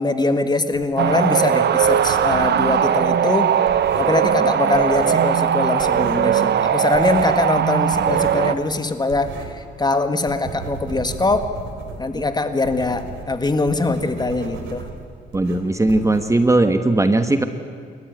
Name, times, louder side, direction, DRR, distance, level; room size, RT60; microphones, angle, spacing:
voice 1, 0.0-3.6 4.0-11.6 12.0-14.9, left 2 dB, 20° left, 9 dB, 1.7 m, -22 dB
sound 1, 0.7-2.7 2.9-5.5 5.8-6.4 6.6-9.7 10.0-16.7, right 4 dB, 80° right, 3.7 m, -36 dB
sound 2, 1.0-8.5, right 9 dB, 60° right, 1.1 m, -19 dB
voice 2, 15.3-17.4, right 2 dB, 15° right, 8 dB, 1.3 m, -18 dB
29.0 x 14.0 x 9.4 m, 2.2 s
cardioid pair, 90°, 20 cm